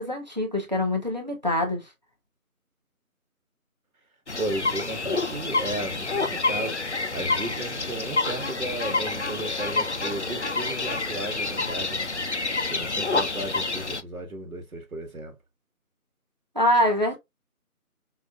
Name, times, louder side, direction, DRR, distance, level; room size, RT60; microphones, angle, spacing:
voice 1, 0.0-1.9 16.5-17.2, left 1 dB, 30° right, 0.8 m, -24 dB
sound 1, 4.3-14.0, left 3 dB, 50° left, 0.5 m, -28 dB
voice 2, 4.4-12.1 12.7-15.4, right 1 dB, 70° right, 1.5 m, -34 dB
5.1 x 2.6 x 2.3 m
figure-of-eight pair, 175°, 45 cm